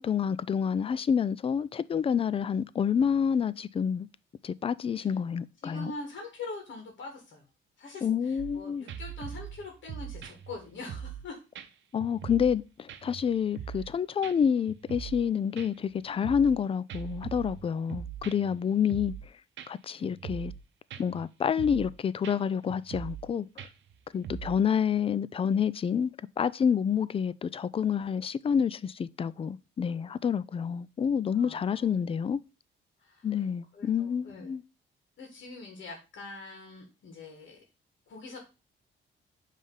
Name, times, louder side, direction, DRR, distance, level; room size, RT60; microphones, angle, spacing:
voice 1, 0.0-4.1 4.4-5.9 8.0-8.9 11.9-19.1 19.7-20.5 21.0-23.5 24.1-32.4 33.2-34.6, left 7 dB, 30° left, 0.4 m, -28 dB
voice 2, 5.6-7.5 7.8-11.4 13.7-13.9 18.6-18.8 20.0-20.1 30.6-30.8 31.3-31.9 33.0-33.4 33.7-34.6 35.2-37.6 38.1-38.4, left 3 dB, 65° left, 1.9 m, -44 dB
sound 1, 8.4-8.6 8.9-11.3 11.5-11.7 12.0-12.6 12.9-13.9 14.2-14.3 14.7-15.3 15.6-16.6 16.9-18.6 18.9-19.3 19.6-19.7 20.0-20.6 20.9-21.2 21.6-21.9 22.2-22.4 22.7-23.3 23.6-24.6, right 9 dB, 70° right, 0.7 m, -41 dB
5.4 x 3.3 x 5.4 m
cardioid pair, 90°, 20 cm